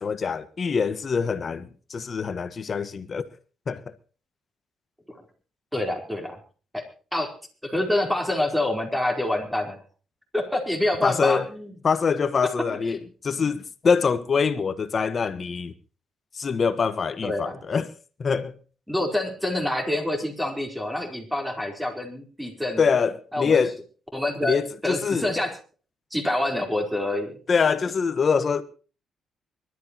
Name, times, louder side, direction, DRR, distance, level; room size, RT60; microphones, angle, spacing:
voice 1, 0.0-3.3 3.7-3.8 11.0-11.5 11.8-15.7 16.3-17.9 18.2-18.5 22.8-23.8 24.4-25.3 27.5-28.6, left 5 dB, 45° left, 1.5 m, -24 dB
voice 2, 5.7-6.4 6.7-6.8 7.1-7.3 7.6-9.8 10.3-11.7 12.8-13.0 17.2-17.6 18.9-22.8 23.3-23.6 24.1-25.6 26.1-27.4, left 1 dB, ahead, 4.5 m, -27 dB
24.5 x 13.0 x 3.1 m
cardioid pair, 90°, 0 cm